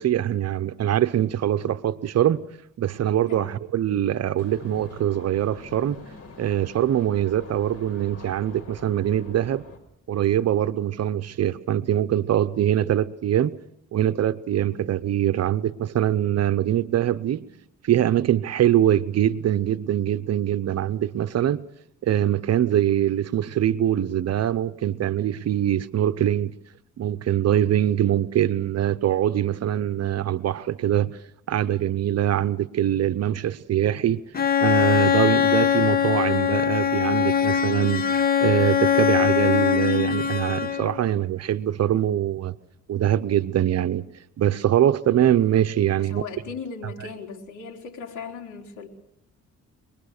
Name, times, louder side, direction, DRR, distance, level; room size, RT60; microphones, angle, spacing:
voice 1, 0.0-2.4 2.8-6.0 6.4-9.6 10.1-13.6 13.9-17.4 17.8-21.6 22.0-26.5 27.0-31.2 31.5-34.2 34.6-38.0 38.4-42.5 42.9-44.0 44.4-46.2, right 11 dB, 55° right, 0.8 m, -23 dB
voice 2, 3.3-3.6 14.6-14.9 42.1-42.2 45.8-48.9, left 5 dB, 80° left, 3.7 m, -38 dB
sound 1, 4.4-9.8, left 4 dB, 50° left, 4.9 m, -45 dB
Bowed string instrument, 34.3-41.1, left 8 dB, 30° left, 1.1 m, -22 dB
25.5 x 20.5 x 6.6 m
cardioid pair, 90°, 30 cm